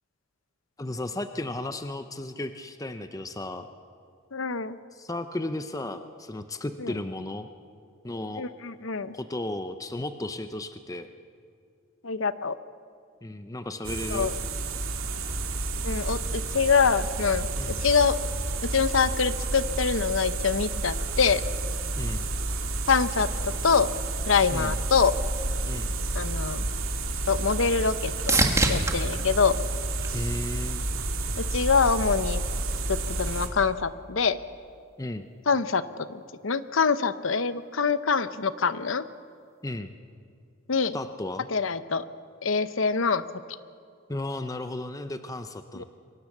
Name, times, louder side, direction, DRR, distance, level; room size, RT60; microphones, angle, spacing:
voice 1, 0.8-3.7 4.9-7.5 8.0-8.5 9.1-11.1 13.2-14.3 17.6-17.9 22.0-22.3 24.5-24.8 25.6-25.9 30.1-30.9 35.0-35.3 39.6-39.9 40.9-41.5 44.1-45.8, left 1 dB, 15° left, 8 dB, 0.7 m, -34 dB
voice 2, 4.3-4.8 6.8-6.9 8.4-9.1 12.0-12.6 14.1-14.3 15.8-18.2 18.7-21.4 22.9-23.9 24.3-25.1 26.1-26.7 27.3-28.3 28.7-29.5 31.4-32.4 32.9-34.4 35.5-39.0 40.7-41.0 41.5-42.0 42.4-43.2 45.8-45.9, left 5 dB, 65° left, 13 dB, 0.8 m, -25 dB
sound 1, 13.8-33.5, right 2 dB, 80° right, 2.3 m, -30 dB
sound 2, 27.2-30.8 31.3-31.9 39.7-39.8, right 2 dB, 15° right, 1.7 m, -29 dB
23.5 x 18.5 x 7.3 m, 2.4 s
head